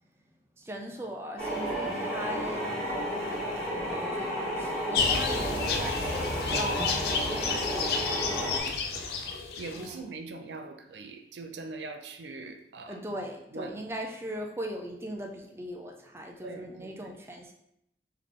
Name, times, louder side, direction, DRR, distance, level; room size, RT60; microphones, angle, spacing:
voice 1, 0.6-8.5 9.7-10.1 12.9-17.5, equal, 15° right, 1 dB, 0.4 m, -40 dB
sound 1, 1.4-8.6, equal, 5° left, 1.6 m, -32 dB
sound 2, 4.9-9.9, left 5 dB, 60° left, 0.4 m, -30 dB
voice 2, 8.9-13.1 13.5-13.8 16.4-17.1, right 3 dB, 80° right, 6 dB, 0.5 m, -42 dB
3.7 x 3.3 x 3.7 m, 0.78 s
head